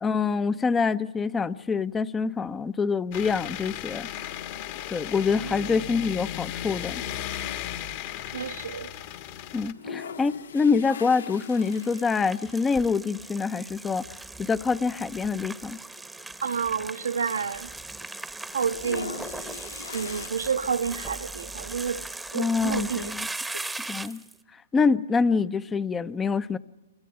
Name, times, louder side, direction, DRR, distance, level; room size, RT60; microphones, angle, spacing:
voice 1, 0.0-4.1 4.9-7.0 9.5-14.0 14.4-15.8 22.3-23.3 23.9-24.2 24.7-26.6, left 5 dB, 15° left, 0.7 m, -25 dB
sound 1, 3.1-9.7, left 11 dB, 45° left, 1.6 m, -35 dB
voice 2, 5.4-5.8 8.3-8.9 16.4-17.7 18.5-19.4 19.9-22.0 22.3-23.1, right 6 dB, 80° right, 1.0 m, -30 dB
sound 2, 9.7-13.1 13.5-13.6 13.8-13.9 14.8-15.0 15.5-15.6 15.7-17.6 17.9-18.3 18.6-20.3, left 6 dB, 75° left, 1.1 m, -41 dB
sound 3, 11.3-24.3, right 2 dB, 5° right, 1.0 m, -39 dB
27.0 x 23.5 x 5.7 m
hypercardioid pair, 120°, 0 cm